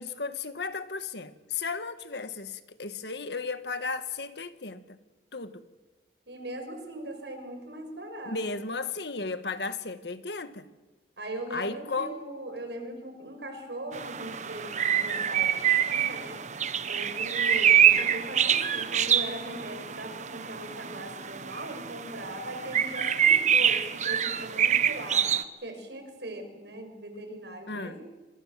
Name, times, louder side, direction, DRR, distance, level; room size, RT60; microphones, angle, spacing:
voice 1, 0.0-5.0 5.3-5.6 8.3-10.7 11.5-12.2 27.7-28.0, left 4 dB, 75° left, 1.7 m, -34 dB
voice 2, 6.3-8.4 11.2-16.4 16.9-25.3 25.6-28.0, right 1 dB, 75° right, 6.4 m, -40 dB
sound 1, 13.9-25.4, right 9 dB, 40° right, 1.1 m, -26 dB
27.5 x 26.0 x 7.6 m
head